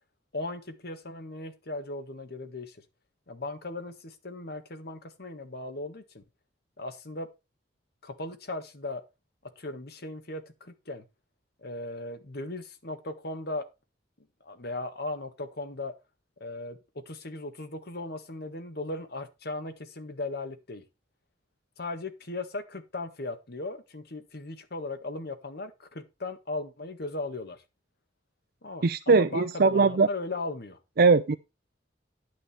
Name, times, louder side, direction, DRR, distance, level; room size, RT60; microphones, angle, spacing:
voice 1, 0.3-2.8 3.3-6.2 6.8-7.3 8.0-9.0 9.6-11.0 11.6-13.7 14.4-15.9 16.4-16.8 17.1-20.8 21.8-27.6 28.6-30.8, left 2 dB, 60° left, 1.6 m, -37 dB
voice 2, 28.8-30.1 31.0-31.3, right 4 dB, 55° right, 0.5 m, -20 dB
10.5 x 6.5 x 4.4 m
head